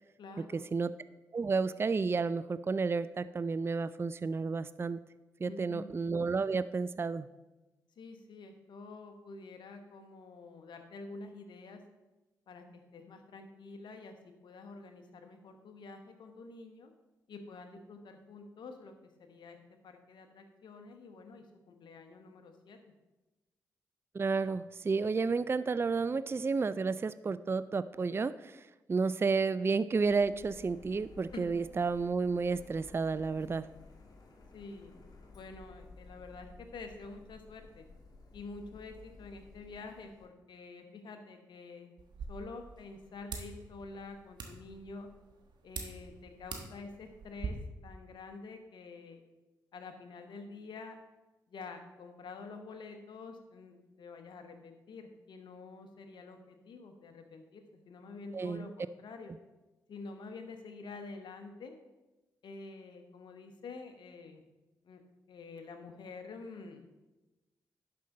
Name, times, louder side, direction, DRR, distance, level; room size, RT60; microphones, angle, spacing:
voice 1, 0.2-0.7 5.4-5.9 8.0-11.8 12.5-16.9 17.3-19.6 19.8-22.8 31.3-31.4 34.5-35.0 35.3-37.9 38.3-41.9 42.3-45.1 45.6-47.6 47.8-49.2 49.7-51.0 51.5-59.3 59.9-61.8 62.4-64.5 64.8-65.0 65.3-67.0, left 3 dB, 70° left, 6 dB, 1.1 m, -48 dB
voice 2, 1.3-5.0 5.4-7.3 24.1-33.7 58.3-58.7, right 4 dB, 30° right, 15 dB, 0.3 m, -31 dB
Printer, 29.9-40.3, left 3 dB, 55° left, 1.5 m, -55 dB
sound 1, 42.0-47.5, right 5 dB, 65° right, 1.3 m, -45 dB
11.5 x 5.5 x 3.8 m, 1.1 s
supercardioid pair, 40°, 8 cm